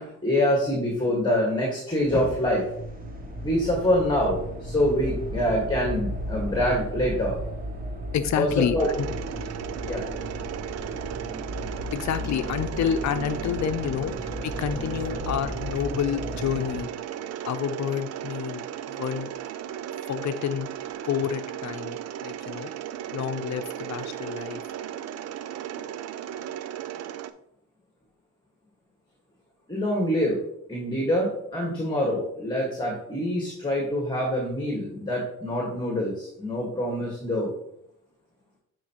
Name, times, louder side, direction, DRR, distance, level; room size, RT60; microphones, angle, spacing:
voice 1, 0.0-2.7 3.4-7.4 8.4-8.9 9.8-10.1 29.7-30.4 30.7-37.5, left 1 dB, 15° left, -1 dB, 1.7 m, -25 dB
sound 1, 2.0-16.8, equal, 30° right, 1.3 m, -35 dB
voice 2, 8.1-9.1 11.9-16.9 17.4-18.6 19.0-19.3 20.1-20.7 21.0-22.7 23.1-24.6, left 8 dB, 65° left, 10 dB, 0.7 m, -29 dB
Mechanisms, 8.8-27.3, right 10 dB, 60° right, 0.5 m, -36 dB
9.3 x 4.6 x 3.0 m, 0.74 s
cardioid pair, 90°, 30 cm